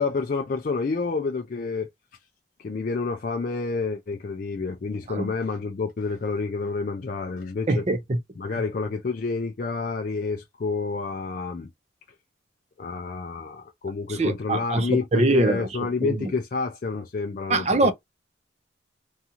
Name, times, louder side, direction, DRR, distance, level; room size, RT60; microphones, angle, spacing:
voice 1, 0.0-1.9 2.6-7.8 8.4-11.7 12.8-17.9, left 4 dB, 45° left, 0.3 m, -29 dB
voice 2, 7.7-8.2 14.1-15.7 16.0-16.1 17.5-17.9, right 2 dB, 35° right, 0.5 m, -23 dB
2.6 x 2.4 x 2.8 m
head